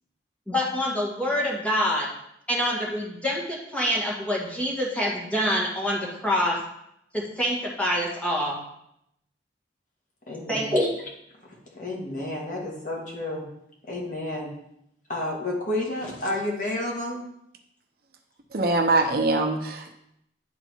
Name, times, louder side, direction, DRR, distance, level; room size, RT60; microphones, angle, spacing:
voice 1, 0.5-2.1 2.5-6.6 7.4-8.6 10.5-10.9, equal, 10° left, -4 dB, 1.8 m, -26 dB
voice 2, 10.3-10.9 11.4-13.4 13.8-14.5 15.1-17.2, left 1 dB, 50° left, -2 dB, 1.9 m, -31 dB
voice 3, 18.5-19.9, right 2 dB, 60° right, 4 dB, 0.8 m, -23 dB
10.0 x 3.9 x 4.5 m, 0.77 s
head